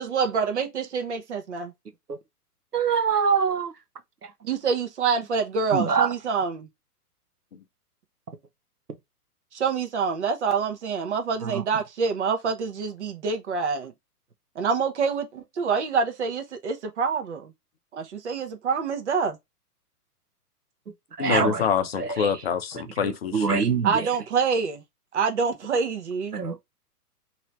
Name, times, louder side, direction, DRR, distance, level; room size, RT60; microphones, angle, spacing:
voice 1, 0.0-1.7 4.4-6.7 9.5-13.9 14.6-17.5 17.9-19.4 23.8-24.8 25.1-26.4, right 5 dB, 45° right, 1.0 m, -26 dB
voice 2, 2.7-3.7 5.7-6.1 21.2-21.6 22.0-22.3 23.0-23.9 26.3-26.6, right 6 dB, 80° right, 0.9 m, -24 dB
voice 3, 21.2-23.6, left 7 dB, 40° left, 0.6 m, -26 dB
3.1 x 2.9 x 4.3 m
figure-of-eight pair, 115°, 47 cm